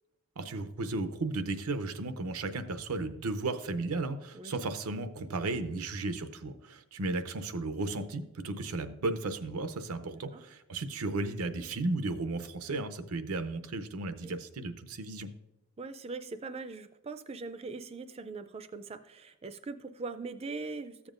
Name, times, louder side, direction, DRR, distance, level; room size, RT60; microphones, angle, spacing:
voice 1, 0.4-15.3, right 2 dB, 85° right, 10 dB, 0.7 m, -34 dB
voice 2, 10.1-10.4 14.2-14.3 15.8-21.1, right 3 dB, 25° right, 11 dB, 0.4 m, -41 dB
14.0 x 7.1 x 2.5 m, 0.94 s
head